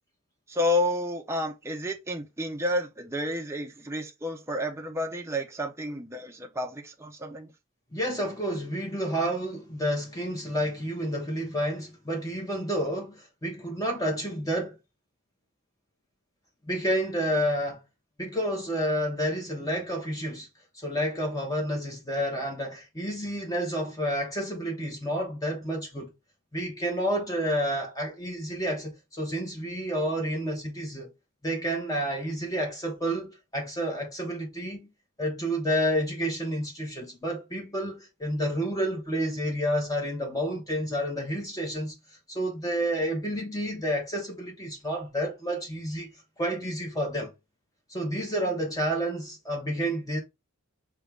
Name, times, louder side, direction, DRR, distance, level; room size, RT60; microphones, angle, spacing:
voice 1, 0.5-7.5, left 1 dB, 10° right, 0.6 m, -30 dB
voice 2, 7.9-14.8 16.6-17.8 18.2-20.5 20.7-26.1 26.5-31.1 31.4-34.9 35.2-41.9 42.3-46.1 46.4-47.3 47.9-50.2, equal, 15° left, 1.0 m, -30 dB
5.1 x 3.0 x 3.5 m
head